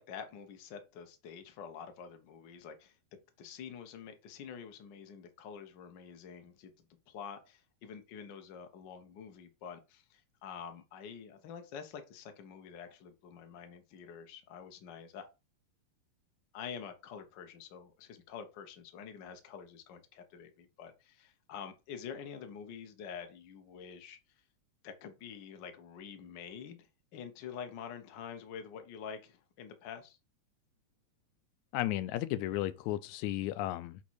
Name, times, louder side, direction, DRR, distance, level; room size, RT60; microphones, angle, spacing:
voice 1, 0.0-2.9 3.4-6.7 7.1-15.2 16.5-24.2 24.8-26.9 27.1-30.2, left 7 dB, 60° left, 1.2 m, -47 dB
voice 2, 31.7-34.0, left 14 dB, 85° left, 1.9 m, -34 dB
8.3 x 3.1 x 4.6 m
omnidirectional pair, 3.3 m